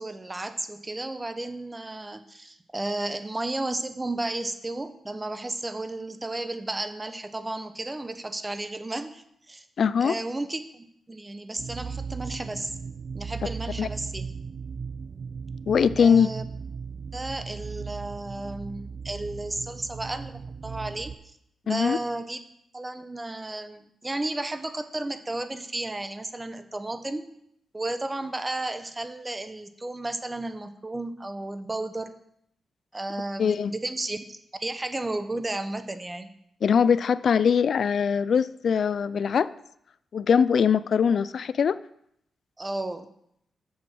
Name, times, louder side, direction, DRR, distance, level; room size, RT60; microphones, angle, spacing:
voice 1, 0.0-9.6 10.0-12.8 13.1-14.4 16.0-16.5 17.1-21.1 21.6-27.3 27.7-32.1 32.9-36.3 42.6-43.1, right 2 dB, 20° right, 10 dB, 0.9 m, -33 dB
voice 2, 9.8-10.2 13.8-13.9 15.7-16.3 21.7-22.0 33.4-33.7 36.6-39.5 40.1-41.8, left 7 dB, 65° left, 17 dB, 0.3 m, -22 dB
sound 1, 11.6-21.2, right 5 dB, 50° right, 0.5 m, -37 dB
7.6 x 7.0 x 6.1 m, 0.73 s
cardioid pair, 80°, 0 cm